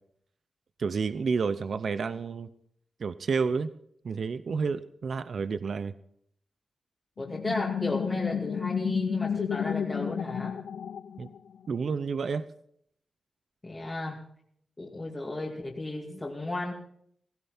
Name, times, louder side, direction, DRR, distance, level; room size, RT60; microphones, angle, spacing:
voice 1, 0.8-2.5 3.0-3.7 4.0-5.9 11.2-11.3 11.7-12.4, right 5 dB, 65° right, 14 dB, 0.7 m, -30 dB
sound 1, 7.2-11.7, left 8 dB, 90° left, 0.5 m, -32 dB
voice 2, 7.2-10.6 13.6-14.2 14.8-16.7, left 2 dB, 25° left, -3 dB, 2.4 m, -34 dB
17.0 x 16.0 x 4.4 m, 0.67 s
cardioid pair, 75°, 0 cm